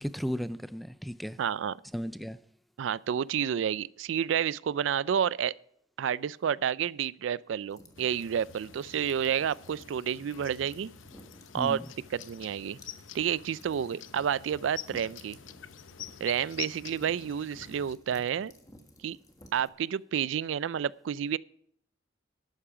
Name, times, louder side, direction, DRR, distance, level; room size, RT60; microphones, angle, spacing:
voice 1, 0.0-1.4 1.9-2.4 11.6-11.9, equal, ahead, 0.4 m, -35 dB
voice 2, 1.4-1.7 2.8-5.5 6.0-10.9 11.5-11.8 12.1-12.8 13.1-15.4 16.2-18.5 19.0-19.2 19.5-21.4, right 8 dB, 75° right, 0.3 m, -30 dB
sound 1, 7.7-19.7, left 1 dB, 20° left, 1.4 m, -56 dB
sound 2, 7.9-18.0, left 10 dB, 90° left, 0.7 m, -47 dB
12.0 x 8.6 x 5.8 m
head